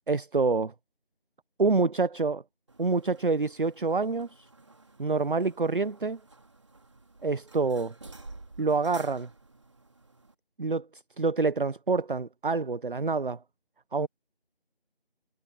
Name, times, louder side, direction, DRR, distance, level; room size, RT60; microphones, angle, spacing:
voice 1, 0.1-0.7 1.6-2.4 2.8-4.5 5.0-6.2 7.2-7.9 8.6-9.3 10.6-13.4 13.9-14.1, right 4 dB, 55° right, 0.6 m, -27 dB
sound 1, 2.7-10.3, right 2 dB, 30° right, 3.3 m, -51 dB
figure-of-eight pair, 170°, 31 cm